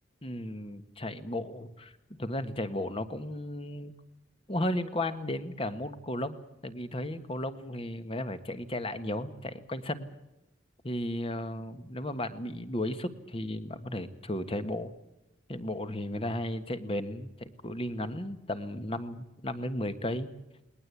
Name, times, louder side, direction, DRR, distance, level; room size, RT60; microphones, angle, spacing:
voice 1, 0.2-1.9 2.2-3.9 4.5-10.1 10.8-14.9 15.5-20.3, left 1 dB, 30° left, 10 dB, 1.5 m, -34 dB
20.5 x 19.5 x 8.4 m, 0.90 s
head